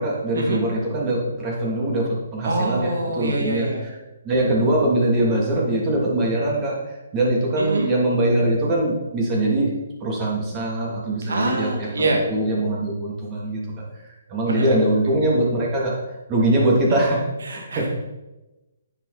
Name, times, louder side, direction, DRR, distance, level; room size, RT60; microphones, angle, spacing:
voice 1, 0.0-4.0 4.2-6.8 7.1-9.7 10.0-13.6 14.0-15.9 16.3-17.2 17.5-17.9, right 1 dB, 25° right, -3 dB, 2.9 m, -22 dB
voice 2, 2.4-3.8 7.6-7.9 11.3-12.2 14.5-14.7 17.5-17.9, right 2 dB, 70° right, 1 dB, 1.9 m, -25 dB
9.7 x 7.2 x 4.2 m, 1.0 s
figure-of-eight pair, 135°, 0 cm